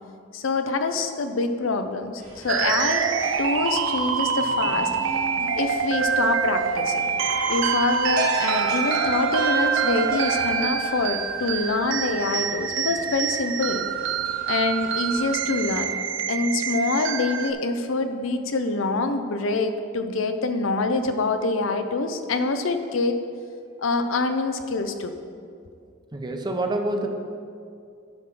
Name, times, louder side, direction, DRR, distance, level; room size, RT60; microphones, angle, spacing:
voice 1, 0.3-3.1 3.4-4.9 5.5-7.0 7.5-13.8 14.5-15.9 16.3-23.2 23.8-25.1, left 3 dB, 85° left, 8 dB, 0.6 m, -25 dB
sound 1, 2.2-16.0, right 1 dB, 45° right, 1.6 m, -39 dB
sound 2, 2.5-17.5, right 6 dB, 75° right, 0.5 m, -25 dB
voice 2, 26.1-27.1, right 2 dB, 20° right, 4 dB, 0.6 m, -26 dB
10.5 x 3.8 x 6.0 m, 2.4 s
head